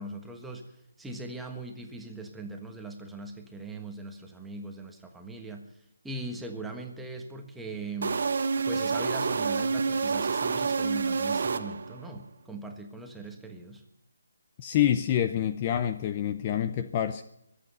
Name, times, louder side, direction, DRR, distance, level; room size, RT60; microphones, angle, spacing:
voice 1, 0.0-5.7 6.0-8.1 8.6-13.8, right 2 dB, 5° right, 3 dB, 1.4 m, -40 dB
sound 1, 8.0-12.1, right 4 dB, 60° right, 1.1 m, -28 dB
voice 2, 14.6-17.2, left 10 dB, 25° left, 10 dB, 0.6 m, -27 dB
23.0 x 8.6 x 5.5 m, 0.78 s
hypercardioid pair, 160°, 0 cm